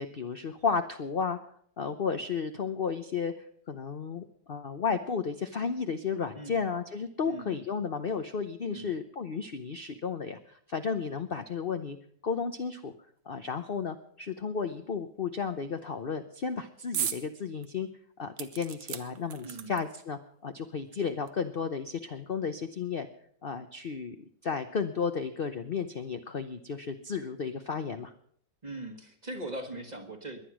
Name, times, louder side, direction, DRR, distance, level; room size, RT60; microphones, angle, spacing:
voice 1, 0.0-1.4 1.8-3.3 3.7-12.0 12.2-12.9 13.3-17.9 18.2-23.1 23.4-24.2 24.4-28.1, left 5 dB, 50° left, 8 dB, 0.7 m, -33 dB
voice 2, 6.3-6.7 7.2-7.6 8.7-8.9 19.4-19.8 28.6-30.5, right 2 dB, 25° right, 7 dB, 1.4 m, -40 dB
sound 1, 16.9-17.2 17.6-17.7 18.4-20.0 20.9-21.0 21.3-21.4, right 9 dB, 70° right, 1.5 m, -36 dB
22.0 x 9.8 x 6.2 m, 0.64 s
omnidirectional pair, 2.0 m